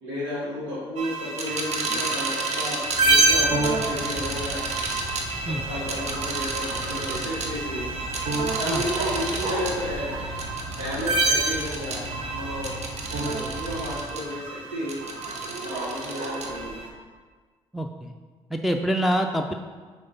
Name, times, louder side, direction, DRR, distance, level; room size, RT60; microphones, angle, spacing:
voice 1, 0.0-4.7 5.5-7.9 8.5-10.1 10.8-12.8 13.1-15.0 15.6-16.8, left 1 dB, 90° right, -9 dB, 1.5 m, -32 dB
sound 1, 1.0-16.9, right 3 dB, 60° right, 1.0 m, -27 dB
sound 2, 2.8-14.2, right 1 dB, 40° right, 1.3 m, -38 dB
voice 2, 17.7-18.1 18.5-19.5, equal, ahead, 2 dB, 0.5 m, -26 dB
5.0 x 4.1 x 5.7 m, 1.5 s
hypercardioid pair, 55°, 13 cm